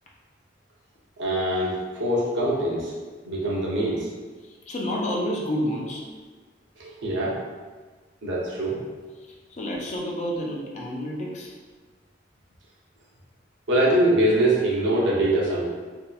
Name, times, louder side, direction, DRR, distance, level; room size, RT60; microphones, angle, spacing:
voice 1, 1.2-2.9 3.2-4.1 6.8-7.4 8.2-8.8 13.7-15.7, right 1 dB, 80° right, -4 dB, 0.7 m, -23 dB
voice 2, 4.4-6.0 9.2-11.5, equal, 35° left, -2 dB, 0.4 m, -30 dB
2.7 x 2.3 x 2.3 m, 1.4 s
head